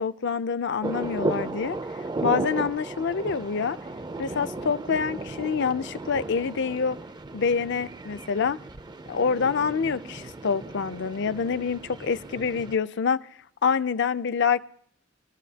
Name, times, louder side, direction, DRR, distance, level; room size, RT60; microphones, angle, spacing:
voice 1, 0.0-1.8 2.2-3.8 4.2-7.0 7.3-8.6 9.1-13.3 13.6-14.7, left 6 dB, 60° left, 0.5 m, -26 dB
sound 1, 0.8-12.8, right 2 dB, 20° right, 0.4 m, -35 dB
22.5 x 13.5 x 2.8 m
head